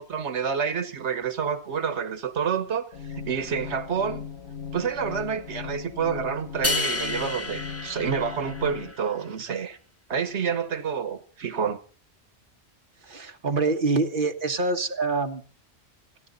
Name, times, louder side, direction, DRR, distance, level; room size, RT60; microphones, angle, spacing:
voice 1, 0.0-4.3 4.7-9.8 10.1-11.8, right 7 dB, 85° right, 1.4 m, -28 dB
sound 1, 2.9-8.9, left 7 dB, 75° left, 1.4 m, -38 dB
sound 2, 6.6-8.9, left 2 dB, 15° left, 0.9 m, -30 dB
voice 2, 13.0-15.4, right 3 dB, 50° right, 1.6 m, -25 dB
29.0 x 10.5 x 4.0 m
omnidirectional pair, 1.1 m